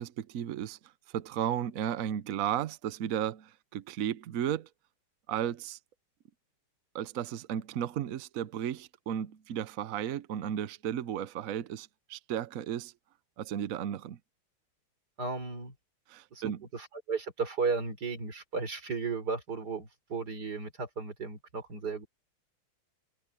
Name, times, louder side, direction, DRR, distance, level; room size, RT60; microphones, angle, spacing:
voice 1, 0.0-4.7 5.3-5.8 6.9-12.9 13.4-14.2 16.1-16.6, right 10 dB, 65° right, 0.8 m, -34 dB
voice 2, 15.2-15.7 16.3-22.1, right 4 dB, 50° right, 4.3 m, -35 dB
omnidirectional pair, 2.3 m